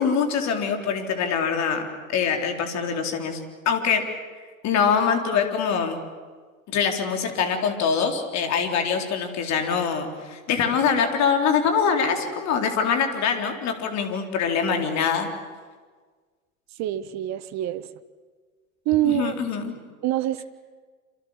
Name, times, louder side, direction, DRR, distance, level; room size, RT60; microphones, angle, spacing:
voice 1, 0.0-3.4 3.7-4.0 4.6-6.0 6.7-15.3 19.0-19.7, left 6 dB, 40° left, 5 dB, 4.0 m, -24 dB
voice 2, 16.8-17.9 18.8-19.4 20.0-20.4, right 14 dB, 40° right, 14 dB, 1.4 m, -25 dB
27.5 x 26.5 x 7.4 m, 1.5 s
figure-of-eight pair, 75°, 41 cm